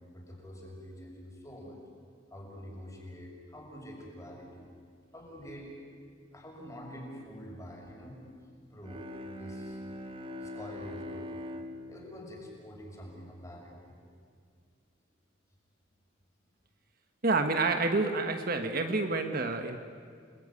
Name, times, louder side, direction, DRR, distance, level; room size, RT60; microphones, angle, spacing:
voice 1, 0.0-1.8 2.3-4.7 5.1-5.7 6.3-8.2 8.7-9.0 9.4-9.8 10.4-11.3 11.9-14.0, equal, 15° left, -1 dB, 6.5 m, -46 dB
Bowed string instrument, 8.7-13.6, left 1 dB, 30° right, 1.6 m, -43 dB
voice 2, 17.2-19.8, right 3 dB, 50° right, 6 dB, 1.4 m, -28 dB
29.5 x 20.5 x 9.8 m, 2.1 s
head